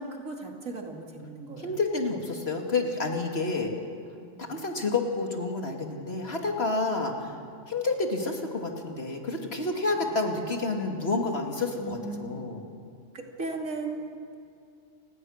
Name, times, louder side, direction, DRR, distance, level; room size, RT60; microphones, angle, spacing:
voice 1, 0.0-1.8 4.3-4.6 7.3-7.4 10.0-10.4 11.8-12.4 13.1-14.3, right 3 dB, 85° right, 1 dB, 3.0 m, -37 dB
voice 2, 1.6-3.7 4.4-7.4 7.7-12.6, left 3 dB, 50° left, 2 dB, 2.6 m, -29 dB
29.5 x 19.5 x 6.5 m, 2.4 s
omnidirectional pair, 1.3 m